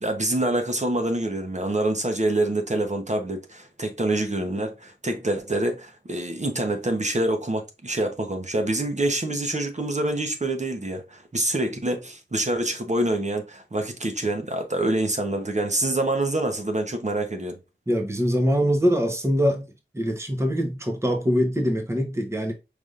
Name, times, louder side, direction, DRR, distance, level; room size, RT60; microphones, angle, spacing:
voice 1, 0.0-17.6, right 1 dB, 35° right, 1.0 m, -26 dB
voice 2, 17.9-19.6 19.9-22.5, equal, 15° right, 1.0 m, -23 dB
5.0 x 3.6 x 2.5 m
wide cardioid pair, 80°, 20 cm